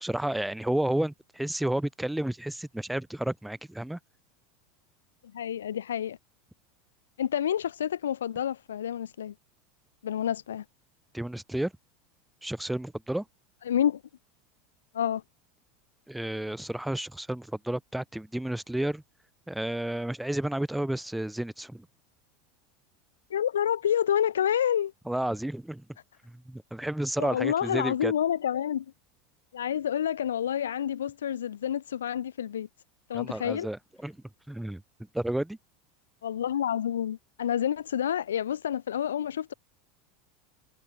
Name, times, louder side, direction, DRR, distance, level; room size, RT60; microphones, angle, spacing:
voice 1, 0.0-4.0 11.1-11.7 12.4-13.2 16.1-19.0 19.5-21.9 25.1-25.8 26.2-28.1 33.1-34.8 35.1-35.6, right 1 dB, 5° right, 1.3 m, -31 dB
voice 2, 5.3-6.2 7.2-9.3 10.0-10.6 13.7-14.0 14.9-15.2 23.3-24.9 27.2-28.8 29.5-32.7 33.1-33.7 36.2-39.5, left 9 dB, 75° left, 1.2 m, -28 dB
figure-of-eight pair, 80°, 0 cm